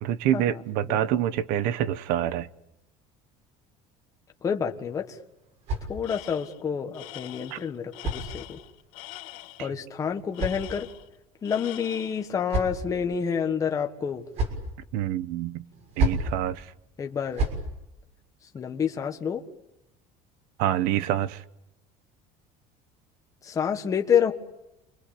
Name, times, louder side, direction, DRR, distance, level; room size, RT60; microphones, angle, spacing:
voice 1, 0.0-2.5 7.5-7.6 9.6-9.7 14.9-15.6 16.0-16.7 20.6-21.4, right 11 dB, 65° right, 1.1 m, -26 dB
voice 2, 4.4-5.2 5.9-8.6 9.6-10.9 11.4-14.3 17.0-17.5 18.5-19.4 23.4-24.3, left 7 dB, 20° left, 1.5 m, -28 dB
sound 1, 4.8-6.4 7.4-8.9 9.8-11.2 12.0-13.1 14.0-14.7 15.7-16.4 17.1-17.7, right 2 dB, 45° right, 6.5 m, -32 dB
Tools, 6.0-6.6 6.9-9.7 10.3-11.2 11.4-12.3, left 16 dB, 60° left, 2.8 m, -44 dB
28.5 x 24.0 x 8.6 m
cardioid pair, 170°, 16 cm